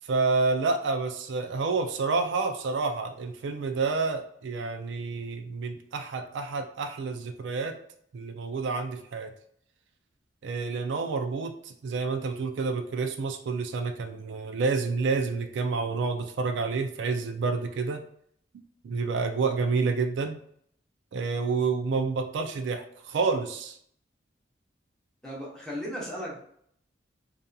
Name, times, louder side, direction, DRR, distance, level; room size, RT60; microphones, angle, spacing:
voice 1, 0.1-7.7 8.1-9.3 10.4-18.0 18.8-20.4 21.1-23.8, right 4 dB, 80° right, 6 dB, 0.3 m, -29 dB
voice 2, 25.2-26.4, equal, 5° left, -6 dB, 0.8 m, -36 dB
2.7 x 2.4 x 2.2 m, 0.66 s
head